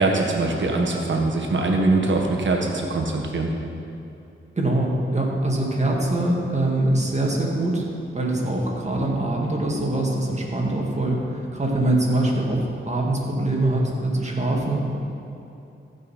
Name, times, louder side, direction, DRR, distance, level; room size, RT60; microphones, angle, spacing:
voice 1, 0.0-3.5, right 2 dB, 60° right, 1 dB, 1.5 m, -22 dB
voice 2, 4.6-7.8 8.1-15.0, right 1 dB, 30° right, -2 dB, 2.1 m, -23 dB
15.0 x 5.5 x 4.3 m, 2.8 s
cardioid pair, 60°, 21 cm